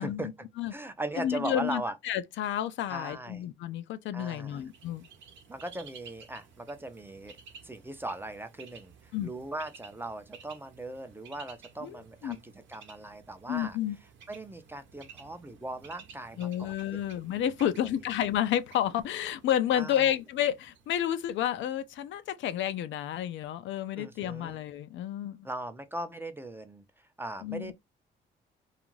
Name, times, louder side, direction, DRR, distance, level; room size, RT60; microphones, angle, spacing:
voice 1, 0.0-2.0 2.9-3.5 4.1-4.6 5.5-7.4 7.6-13.8 14.3-16.8 19.7-20.1 24.0-24.6 25.4-27.7, right 2 dB, 10° right, 0.5 m, -39 dB
voice 2, 1.2-5.0 9.1-9.3 11.8-12.0 12.2-12.4 13.5-14.0 16.4-25.5 27.4-27.7, left 11 dB, 75° left, 0.4 m, -30 dB
Bird, 4.5-22.3, right 6 dB, 70° right, 0.8 m, -54 dB
2.5 x 2.4 x 3.0 m
cardioid pair, 90°, 20 cm